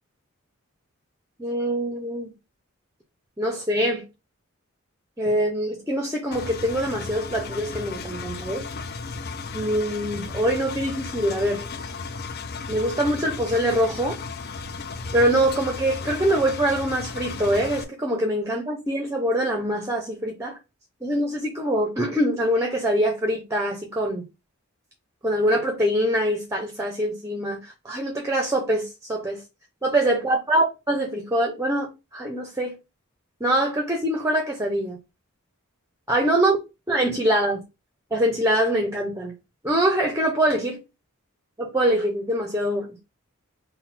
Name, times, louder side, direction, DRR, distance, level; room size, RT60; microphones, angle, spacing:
voice 1, 1.4-2.3 3.4-4.1 5.2-8.7 9.5-11.7 12.7-14.1 15.1-20.6 21.0-24.3 25.2-29.4 29.8-32.8 33.4-35.0 36.1-36.6 36.9-37.6 38.1-39.3 39.6-40.8 41.6-43.0, right 1 dB, 15° right, 0.7 m, -24 dB
Engine, 6.3-17.8, left 4 dB, 50° left, 0.5 m, -35 dB
3.8 x 2.2 x 4.2 m
head